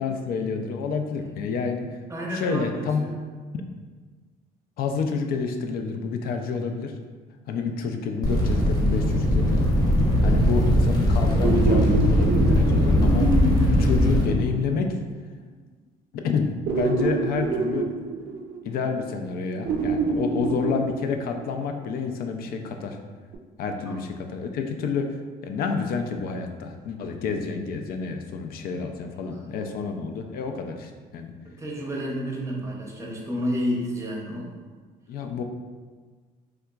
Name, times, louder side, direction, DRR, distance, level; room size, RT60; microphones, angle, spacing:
voice 1, 0.0-1.9 2.3-3.1 4.8-6.9 7.5-9.7 10.2-13.3 13.7-14.9 16.2-17.9 18.6-23.0 23.6-25.2 25.4-31.3 35.1-35.4, left 5 dB, 65° left, 5 dB, 0.4 m, -29 dB
voice 2, 2.1-3.2 10.3-10.4 23.9-24.0 29.3-29.9 31.4-34.6, equal, 15° right, -2 dB, 0.7 m, -31 dB
sound 1, 8.2-14.2, left 1 dB, 20° left, 0.8 m, -20 dB
sound 2, 9.6-10.3 11.4-15.0 16.7-18.9 19.6-21.7 23.3-23.4, right 3 dB, 65° right, 0.4 m, -27 dB
3.4 x 2.8 x 2.3 m, 1.5 s
cardioid pair, 110°, 17 cm